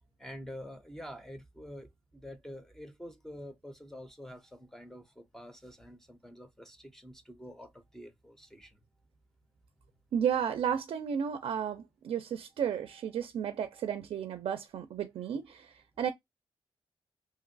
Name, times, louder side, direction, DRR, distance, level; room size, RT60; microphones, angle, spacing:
voice 1, 0.2-8.7 12.6-13.1 13.7-14.0, equal, 5° left, 0.4 m, -47 dB
voice 2, 10.1-16.1, right 8 dB, 70° right, 0.4 m, -33 dB
2.9 x 2.5 x 2.5 m
wide cardioid pair, 175°, 10 cm